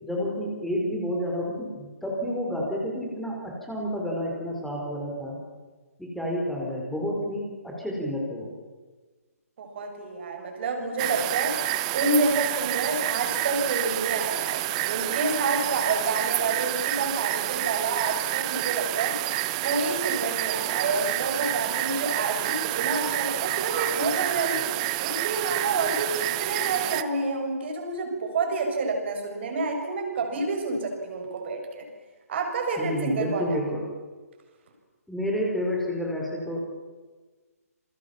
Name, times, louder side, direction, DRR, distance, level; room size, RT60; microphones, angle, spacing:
voice 1, 0.0-5.4 6.0-8.5 32.8-33.8 35.1-36.6, equal, ahead, -2 dB, 5.1 m, -30 dB
voice 2, 9.6-19.2 19.6-24.7 25.0-31.9 32.3-33.6, right 3 dB, 45° right, 3 dB, 6.9 m, -28 dB
sound 1, 11.0-27.0, right 17 dB, 25° right, 1.0 m, -28 dB
28.5 x 23.5 x 7.4 m, 1.3 s
figure-of-eight pair, 140°, 8 cm